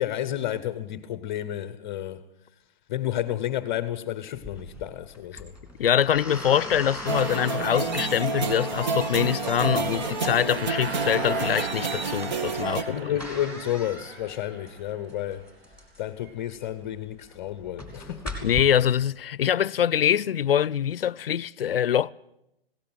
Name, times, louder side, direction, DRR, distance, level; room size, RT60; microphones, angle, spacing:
voice 1, 0.0-2.2 2.9-5.5 12.9-15.5 16.0-18.3, left 12 dB, 25° left, 0.9 m, -31 dB
sound 1, 4.4-18.6, left 1 dB, 5° right, 2.8 m, -41 dB
voice 2, 5.8-13.1 18.4-22.1, left 9 dB, 70° left, 0.7 m, -24 dB
sound 2, 7.1-12.8, right 4 dB, 50° right, 2.2 m, -29 dB
sound 3, 10.5-15.4, right 6 dB, 75° right, 1.1 m, -38 dB
20.0 x 17.5 x 8.8 m
hypercardioid pair, 150°, 30 cm